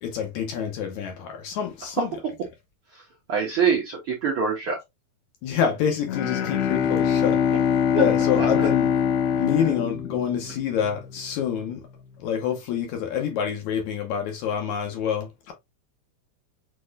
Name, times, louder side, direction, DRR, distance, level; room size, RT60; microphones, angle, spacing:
voice 1, 0.0-2.1 5.4-7.4 7.9-8.9 9.4-11.8 12.2-15.5, left 8 dB, 70° left, 2.0 m, -27 dB
voice 2, 3.3-4.8 8.4-8.7, right 6 dB, 70° right, 1.3 m, -25 dB
Bowed string instrument, 6.0-10.9, left 8 dB, 90° left, 1.5 m, -23 dB
6.3 x 3.0 x 2.4 m
omnidirectional pair, 3.8 m